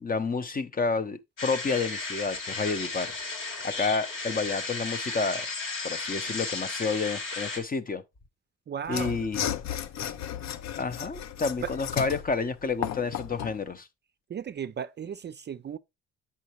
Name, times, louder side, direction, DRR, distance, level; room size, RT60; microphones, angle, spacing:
voice 1, 0.0-3.1 3.6-5.5 5.8-8.0 8.9-9.4 10.8-13.9, left 4 dB, 30° left, 0.7 m, -30 dB
sound 1, 1.4-7.6, left 3 dB, 85° left, 2.4 m, -34 dB
voice 2, 8.7-9.1 11.6-11.7 14.3-15.8, right 8 dB, 35° right, 0.4 m, -35 dB
Mechanisms / Sawing, 8.9-13.6, left 10 dB, 60° left, 0.6 m, -34 dB
8.2 x 5.7 x 3.0 m
cardioid pair, 90°, 30 cm